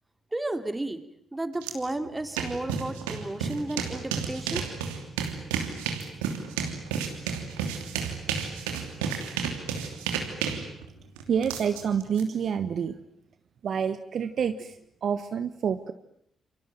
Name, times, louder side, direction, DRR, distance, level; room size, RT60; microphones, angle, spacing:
voice 1, 0.3-1.0 1.3-4.6, right 2 dB, 20° right, 8 dB, 3.1 m, -33 dB
sound 1, 1.6-1.7 2.0-12.2, right 7 dB, 85° right, 2.9 m, -32 dB
voice 2, 11.3-13.0 13.6-15.9, right 7 dB, 60° right, 9 dB, 1.3 m, -28 dB
29.0 x 24.5 x 7.8 m, 0.72 s
hypercardioid pair, 40°, 0 cm